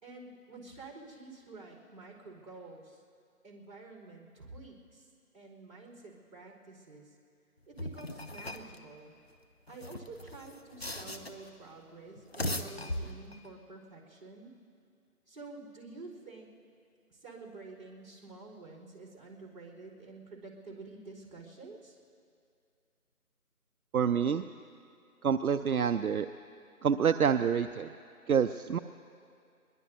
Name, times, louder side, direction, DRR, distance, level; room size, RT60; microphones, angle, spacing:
voice 1, 0.0-3.0 3.4-5.1 5.3-7.1 7.7-9.1 9.7-14.5 15.3-16.5 17.1-22.0, right 3 dB, 35° right, -9 dB, 3.8 m, -49 dB
sound 1, 7.8-8.8 9.7-11.5 12.2-13.5, left 1 dB, 45° left, 0.7 m, -38 dB
voice 2, 23.9-24.4 25.2-26.3 26.8-27.9 28.3-28.8, right 7 dB, 70° right, 10 dB, 0.5 m, -27 dB
22.5 x 21.5 x 2.7 m, 2.4 s
figure-of-eight pair, 175°, 45 cm